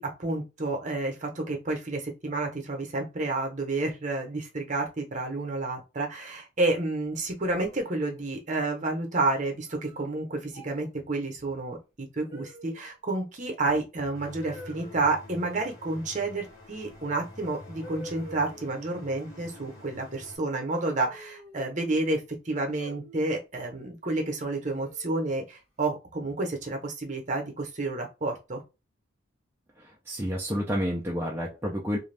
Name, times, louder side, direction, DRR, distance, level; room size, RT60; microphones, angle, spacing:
voice 1, 0.0-28.6, right 2 dB, 40° right, 0.8 m, -30 dB
sound 1, 7.5-8.4 9.7-10.1 10.5-10.9 12.3-12.9 14.4-15.0 16.9-17.0 17.8-18.8 20.7-21.8 22.8-23.4 24.7-25.2, equal, 40° left, 1.4 m, -47 dB
sound 2, 14.1-20.4, left 1 dB, 15° left, 0.8 m, -47 dB
voice 2, 29.8-32.0, equal, 10° right, 0.4 m, -30 dB
2.5 x 2.3 x 3.2 m
head